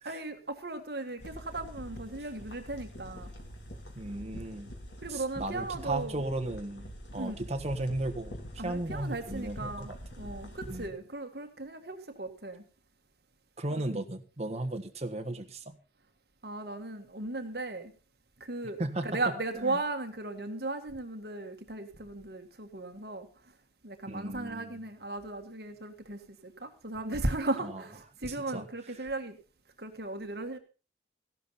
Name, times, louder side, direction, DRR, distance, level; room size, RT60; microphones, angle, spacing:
voice 1, 0.1-3.3 5.0-6.2 7.2-7.4 8.6-9.9 10.2-12.6 13.7-14.1 16.4-17.9 18.4-23.6 23.8-29.4 29.8-30.6, right 2 dB, 60° right, 1.6 m, -36 dB
sound 1, 1.2-10.9, equal, 90° left, 2.8 m, -45 dB
voice 2, 4.0-4.7 5.1-10.0 10.7-10.9 13.6-15.8 18.8-19.2 19.6-19.7 24.1-24.7 27.6-27.7 28.3-28.7, right 2 dB, 35° right, 1.3 m, -35 dB
15.0 x 11.5 x 4.1 m
head